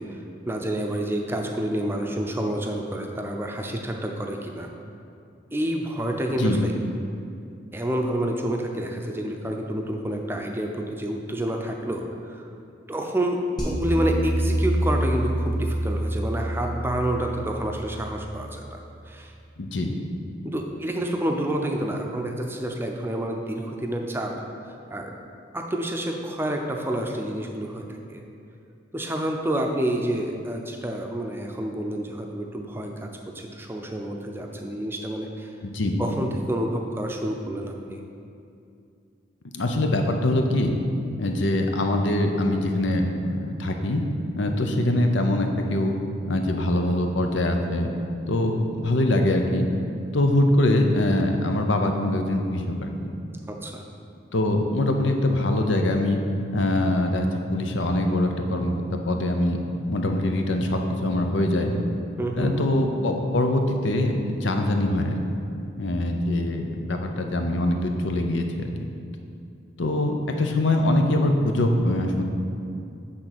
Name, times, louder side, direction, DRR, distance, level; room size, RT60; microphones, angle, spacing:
voice 1, 0.0-4.7 5.5-6.7 7.7-12.5 12.9-19.3 20.4-24.3 24.9-25.1 25.5-28.2 28.9-35.5 36.0-38.0 53.5-53.8 62.2-62.6, right 1 dB, 10° right, 2 dB, 0.6 m, -29 dB
sound 1, 13.6-18.8, right 1 dB, 20° left, 1.5 m, -27 dB
voice 2, 19.6-19.9 35.6-35.9 39.5-40.7 41.2-44.0 44.4-45.9 46.3-47.9 48.3-49.7 50.1-53.1 54.3-56.2 56.5-59.6 59.9-61.7 62.3-65.2 65.8-68.7 69.8-72.2, left 1 dB, 80° left, 4 dB, 0.8 m, -23 dB
8.6 x 3.8 x 6.0 m, 2.5 s
head